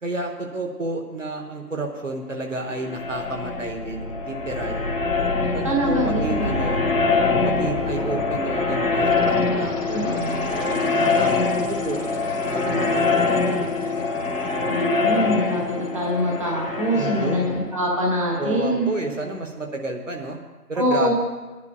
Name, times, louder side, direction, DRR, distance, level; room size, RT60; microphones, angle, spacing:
voice 1, 0.0-4.9 5.5-6.9 7.4-11.4 11.7-13.7 16.9-17.6 18.4-20.4 20.7-21.1, right 2 dB, 50° right, 2 dB, 1.1 m, -31 dB
sound 1, 2.6-19.2, left 3 dB, 50° left, 1.6 m, -24 dB
voice 2, 5.6-6.7 9.9-11.0 12.6-13.1 14.6-18.9 20.7-21.1, equal, 20° right, -3 dB, 1.2 m, -25 dB
22.5 x 10.5 x 2.3 m, 1.2 s
figure-of-eight pair, 155°, 48 cm